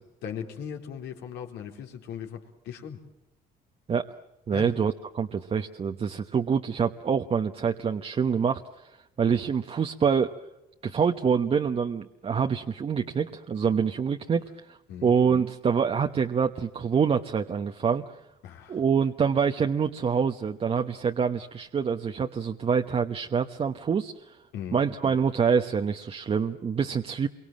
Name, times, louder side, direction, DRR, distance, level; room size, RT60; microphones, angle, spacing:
voice 1, 0.2-3.0 4.5-4.8 14.9-15.1 18.4-18.8 24.5-24.8, left 8 dB, 85° left, 3 dB, 3.9 m, -38 dB
voice 2, 4.5-8.9 9.2-10.3 10.8-18.0 18.7-24.4 24.7-27.3, right 6 dB, 35° right, 5 dB, 1.1 m, -26 dB
27.5 x 24.0 x 7.5 m, 0.92 s
cardioid pair, 110°, 17 cm